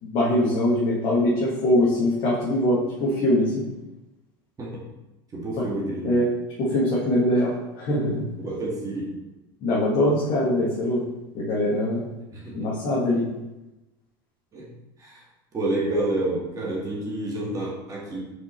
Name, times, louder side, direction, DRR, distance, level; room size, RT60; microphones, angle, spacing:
voice 1, 0.0-3.6 5.6-5.7 6.0-6.3 6.6-8.2 9.6-11.0 11.3-12.1 12.5-13.2, left 1 dB, 50° left, -6 dB, 1.6 m, -22 dB
voice 2, 5.3-6.2 8.4-9.2 12.3-12.7 14.5-14.7 15.0-15.3 15.5-18.2, right 1 dB, 30° right, -4 dB, 2.0 m, -29 dB
5.0 x 4.4 x 4.3 m, 1.0 s
supercardioid pair, 100°, 12 cm